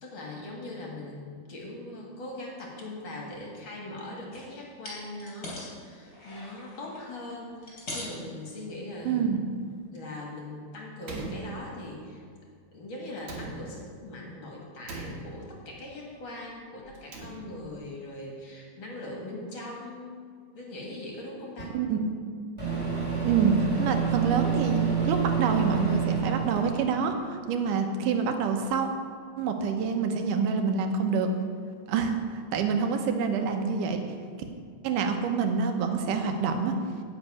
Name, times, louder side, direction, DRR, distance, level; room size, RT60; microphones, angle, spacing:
voice 1, 0.0-9.3 9.9-12.2 12.7-20.3 20.5-21.8, left 1 dB, 45° left, -2 dB, 1.9 m, -41 dB
sound 1, 4.3-4.5 4.8-5.7 6.1-7.0 7.5-8.3 8.9-9.1 9.5-9.6, left 1 dB, 25° left, 3.2 m, -40 dB
voice 2, 9.1-9.4 21.7-22.1 23.2-28.9 29.4-31.3 31.9-34.0 34.8-36.7, right 5 dB, 80° right, 5 dB, 2.4 m, -27 dB
Slam, 11.0-12.2 13.2-14.1 14.8-15.7 16.9-17.8, right 2 dB, 60° right, 2.7 m, -41 dB
Microwave oven, 21.6-21.7 22.6-26.8, right 6 dB, 10° right, 2.0 m, -28 dB
10.0 x 5.3 x 8.3 m, 2.1 s
omnidirectional pair, 3.8 m